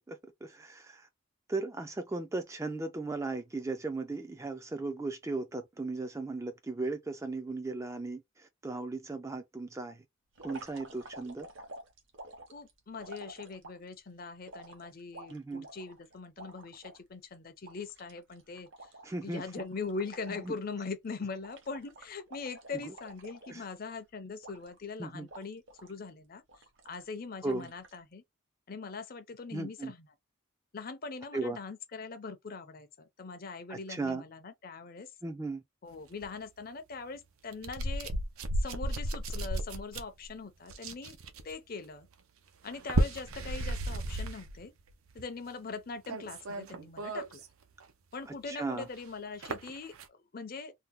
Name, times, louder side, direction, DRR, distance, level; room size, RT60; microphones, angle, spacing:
voice 1, 0.1-1.1 1.5-10.0 10.4-11.5 15.3-15.7 19.0-19.4 20.4-20.5 22.9-23.0 23.5-23.6 25.0-25.3 27.4-27.7 29.5-29.9 31.3-31.6 33.7-34.2 35.2-35.6 48.3-48.9, right 3 dB, 15° right, 0.3 m, -37 dB
sound 1, 10.4-13.9 14.5-17.0 17.3-17.4 17.7-20.6 20.9-21.1 21.4-23.9 24.4-24.9 25.3-26.0 26.5-27.1 27.5-28.0, right 2 dB, 60° right, 0.8 m, -50 dB
voice 2, 12.5-18.9 19.2-26.4 26.8-28.2 28.7-30.1 30.7-35.1 35.8-38.1 38.6-41.2 41.4-42.1 42.6-44.7 45.1-47.4 48.1-50.7, left 4 dB, 45° left, 0.5 m, -42 dB
sound 2, 36.2-36.3 37.5-40.3 40.7-41.5 42.7-44.6 44.9-45.2 46.1-47.5 47.8-47.9 48.6-48.7 49.4-50.0, right 1 dB, 90° right, 0.6 m, -33 dB
2.8 x 2.1 x 3.5 m
head